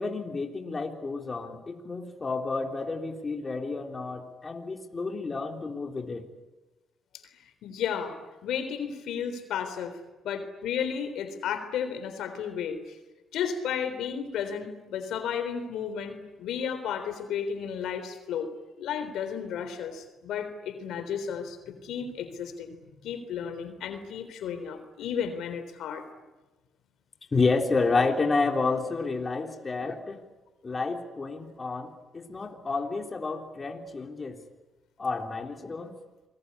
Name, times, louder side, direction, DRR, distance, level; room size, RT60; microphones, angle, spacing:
voice 1, 0.0-6.3 27.3-30.2 30.6-34.4 35.0-35.9, left 3 dB, 30° left, 3 dB, 3.6 m, -30 dB
voice 2, 7.6-8.2 8.4-10.0 10.2-12.8 13.3-18.5 18.8-26.0, left 7 dB, 80° left, 9 dB, 3.7 m, -33 dB
28.5 x 21.5 x 9.8 m, 1.1 s
cardioid pair, 90°, 0 cm